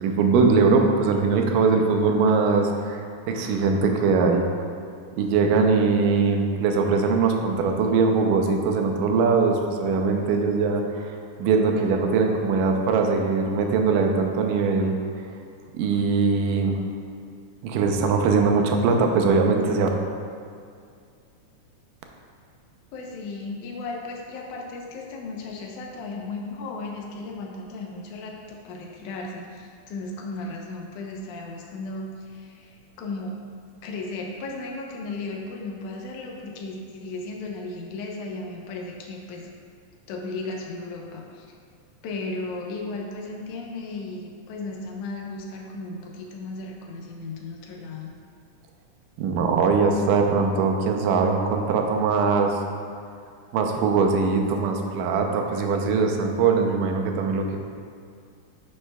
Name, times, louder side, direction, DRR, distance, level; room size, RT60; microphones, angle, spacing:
voice 1, 0.0-4.5 5.2-14.9 15.7-16.8 17.6-19.9 49.2-52.6 53.5-57.6, right 4 dB, 85° right, 3 dB, 2.2 m, -21 dB
voice 2, 22.9-33.4 33.8-39.5 40.1-41.5 42.0-48.1, left 3 dB, 75° left, 0 dB, 2.1 m, -35 dB
9.8 x 5.5 x 2.2 m, 2.3 s
omnidirectional pair, 3.7 m